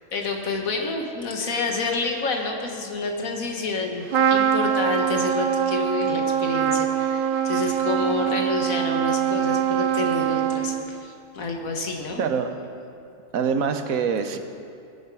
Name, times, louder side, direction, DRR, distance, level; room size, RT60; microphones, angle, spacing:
voice 1, 0.1-12.2, left 3 dB, 80° left, 2 dB, 1.8 m, -29 dB
Trumpet, 4.1-11.0, right 8 dB, 60° right, 0.5 m, -23 dB
voice 2, 12.2-12.5 13.3-14.4, right 6 dB, 85° right, 8 dB, 1.3 m, -24 dB
20.5 x 7.9 x 4.8 m, 2.5 s
omnidirectional pair, 1.4 m